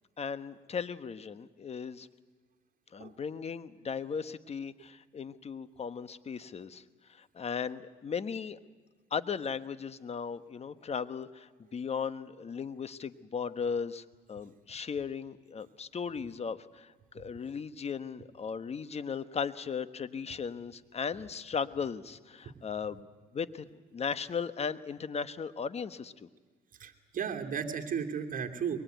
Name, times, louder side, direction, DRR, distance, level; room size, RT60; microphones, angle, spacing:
voice 1, 0.2-2.1 2.9-6.8 7.1-8.6 9.1-23.1 23.3-26.3, left 6 dB, 40° left, 13 dB, 1.2 m, -37 dB
voice 2, 26.8-28.8, right 7 dB, 50° right, 3 dB, 2.7 m, -34 dB
23.0 x 22.5 x 9.3 m, 1.4 s
supercardioid pair, 80°, 17 cm